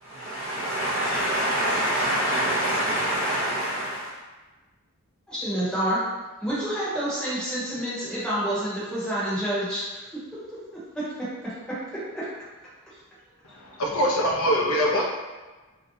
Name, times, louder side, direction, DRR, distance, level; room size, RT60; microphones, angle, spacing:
voice 1, 0.0-4.1, right 1 dB, 55° right, -10 dB, 0.5 m, -26 dB
voice 2, 5.3-6.0 6.4-10.1 10.9-11.0 11.4-11.5 12.1-12.3, right 1 dB, 5° left, -11 dB, 0.8 m, -28 dB
voice 3, 13.4-15.0, equal, 70° left, -1 dB, 0.5 m, -23 dB
2.6 x 2.1 x 2.7 m, 1.2 s
head